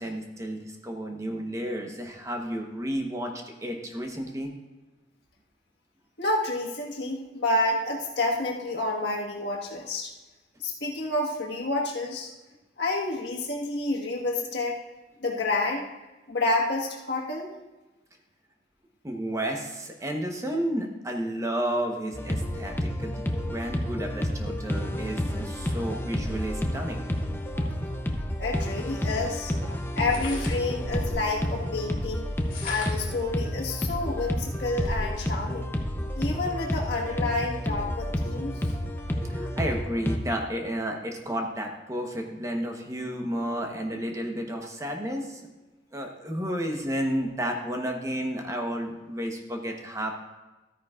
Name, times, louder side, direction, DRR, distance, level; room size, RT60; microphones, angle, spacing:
voice 1, 0.0-4.5 19.0-27.0 39.2-45.4 45.9-50.1, right 1 dB, 20° right, 2 dB, 1.0 m, -32 dB
voice 2, 6.2-10.1 10.6-12.3 12.8-14.8 15.2-15.9 16.3-17.5 27.5-27.8 28.4-32.3 32.6-35.7 36.1-38.5, left 2 dB, 75° left, -1 dB, 1.6 m, -29 dB
sound 1, 22.1-40.2, equal, 10° left, 0.7 m, -30 dB
sound 2, 30.0-31.3 32.3-33.2 33.8-33.9 34.2-35.3, left 2 dB, 50° left, 2.8 m, -37 dB
13.0 x 9.4 x 2.4 m, 1.1 s
head